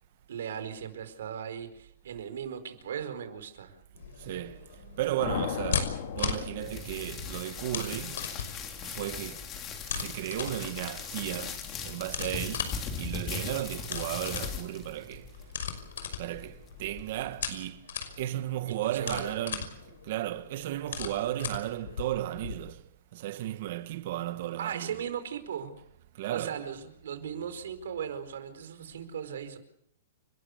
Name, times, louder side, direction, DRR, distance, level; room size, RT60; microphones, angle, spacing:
voice 1, 0.3-3.8 18.6-19.4 24.6-25.7 26.3-29.6, right 8 dB, 75° right, 4.7 m, -37 dB
sound 1, 4.0-22.5, left 7 dB, 80° left, 5.8 m, -39 dB
voice 2, 4.2-8.3 8.8-9.5 9.9-15.3 16.2-17.9 18.2-19.8 20.0-22.8 23.1-25.1 26.1-26.7, right 13 dB, 50° right, 1.5 m, -35 dB
sound 2, 5.2-7.4, left 10 dB, 55° left, 2.3 m, -36 dB
sound 3, 6.6-17.6, left 5 dB, 20° left, 3.4 m, -40 dB
30.0 x 13.0 x 8.4 m
hypercardioid pair, 160°, 0 cm